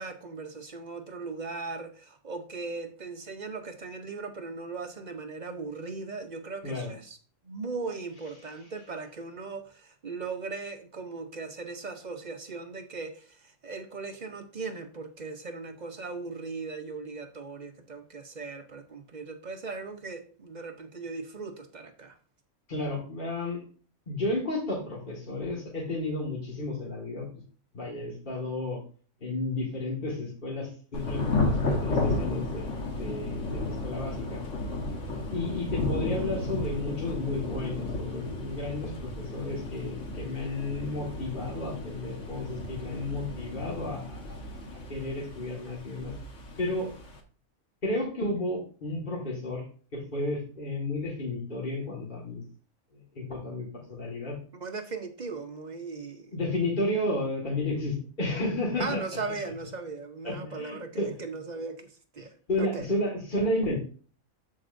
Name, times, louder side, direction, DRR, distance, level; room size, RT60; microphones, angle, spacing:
voice 1, 0.0-7.2 7.4-22.2 54.5-56.4 58.8-62.9, right 4 dB, 40° right, 0.7 m, -38 dB
voice 2, 6.6-6.9 22.7-23.6 24.1-27.3 27.7-28.8 29.2-32.7 33.0-34.4 35.3-44.4 44.7-46.1 46.6-46.9 47.8-49.6 49.9-52.4 52.9-54.4 56.3-59.0 60.2-61.1 62.5-63.8, left 2 dB, 35° left, 1.9 m, -32 dB
Thunder / Rain, 30.9-47.2, left 2 dB, 60° left, 1.5 m, -33 dB
13.0 x 4.7 x 2.6 m
omnidirectional pair, 1.5 m